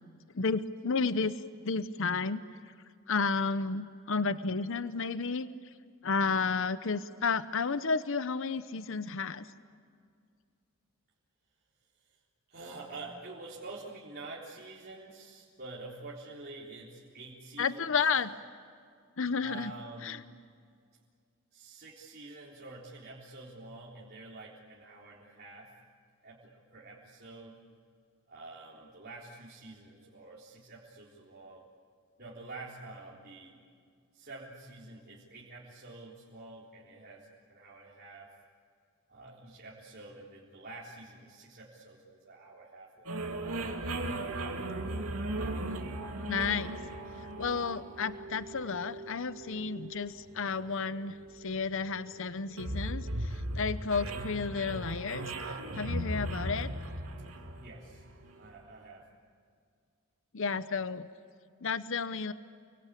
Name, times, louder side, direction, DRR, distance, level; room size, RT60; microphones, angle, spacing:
voice 1, 0.3-2.4 3.1-5.5 6.0-9.5 17.6-18.3 19.2-19.7 20.0-20.2 46.3-46.7 47.4-56.7 60.3-61.1 61.6-62.3, left 5 dB, 65° left, 13 dB, 0.8 m, -32 dB
voice 2, 12.5-17.9 19.4-20.3 21.5-25.7 26.2-27.6 28.3-31.7 32.2-33.6 34.1-38.3 39.1-43.2 57.6-58.0 58.4-59.1, right 2 dB, 45° right, -7 dB, 3.9 m, -48 dB
sound 1, 43.1-58.5, right 1 dB, 80° right, 2.9 m, -38 dB
30.0 x 23.5 x 8.5 m, 2.2 s
head